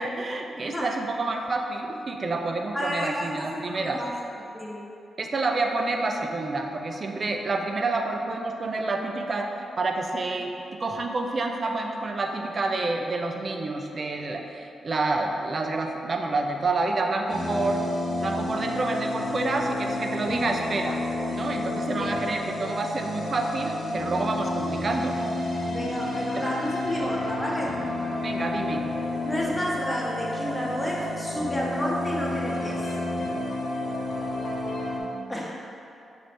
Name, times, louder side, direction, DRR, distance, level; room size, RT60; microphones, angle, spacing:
voice 1, 0.0-4.0 5.2-10.5 10.8-17.8 18.2-21.0 21.3-25.2 26.3-26.4 28.2-28.8, right 3 dB, 50° right, 3 dB, 0.4 m, -28 dB
voice 2, 0.6-0.9 2.7-4.1 4.5-4.8 20.3-20.4 21.9-22.1 25.7-27.8 29.2-32.9 35.3-35.7, equal, 15° left, -3 dB, 0.6 m, -31 dB
sound 1, 17.3-35.0, left 2 dB, 70° left, 0.8 m, -30 dB
5.9 x 2.7 x 3.2 m, 2.7 s
supercardioid pair, 55°, 0 cm